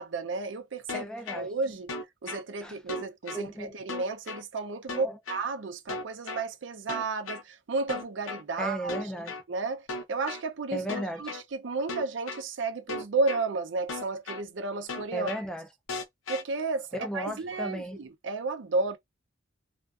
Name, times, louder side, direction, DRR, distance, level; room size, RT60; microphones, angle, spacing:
voice 1, 0.0-1.0 1.4-1.9 2.2-8.9 9.5-10.8 11.2-15.3 16.3-16.9 17.1-19.0, right 3 dB, 65° right, 0.5 m, -32 dB
sound 1, 0.9-1.4 1.9-2.4 2.9-3.4 3.9-4.4 4.9-5.4 5.9-6.4 6.9-7.4 7.9-8.4 8.9-9.4 9.9-10.4 10.9-11.4 11.9-12.4 12.9-13.4 13.9-14.4 14.9-15.4 15.9-16.4, left 3 dB, 85° left, 0.6 m, -36 dB
voice 2, 0.9-1.5 2.6-2.8 3.3-3.8 4.9-5.2 8.6-9.3 10.7-11.3 15.1-15.7 16.9-18.0, right 1 dB, 5° left, 0.4 m, -35 dB
2.4 x 2.3 x 2.3 m
head